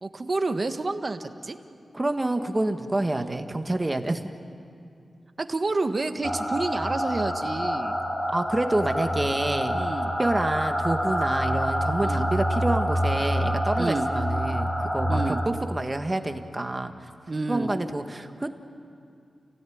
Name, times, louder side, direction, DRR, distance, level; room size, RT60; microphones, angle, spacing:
voice 1, 0.0-1.6 3.1-3.4 5.4-8.0 9.7-10.1 12.0-12.3 13.8-14.1 15.1-15.4 17.3-17.7, right 3 dB, 40° right, 8 dB, 1.4 m, -29 dB
voice 2, 1.9-4.3 8.3-9.9 10.2-17.1 17.5-18.5, right 2 dB, 25° right, 6 dB, 1.6 m, -28 dB
sound 1, 6.2-15.5, equal, 25° left, 3.6 m, -27 dB
29.5 x 17.5 x 9.5 m, 2.4 s
cardioid pair, 75°, 0 cm